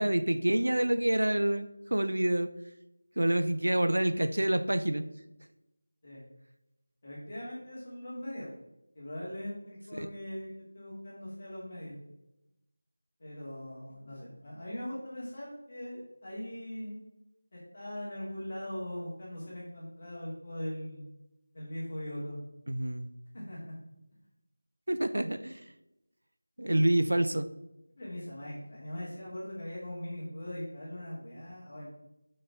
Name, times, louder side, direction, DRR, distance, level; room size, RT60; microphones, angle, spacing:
voice 1, 0.0-2.5 3.2-5.0 9.9-10.1 22.7-23.1 24.9-25.6 26.6-27.5, right 1 dB, 90° right, 11 dB, 0.6 m, -27 dB
voice 2, 7.0-8.5 8.9-10.5 10.7-12.0 13.2-17.0 17.5-21.0 21.5-22.4 23.3-23.7 26.7-26.8 28.0-31.9, left 1 dB, 35° left, -6 dB, 2.5 m, -40 dB
9.4 x 5.4 x 3.6 m, 0.91 s
figure-of-eight pair, 175°, 0 cm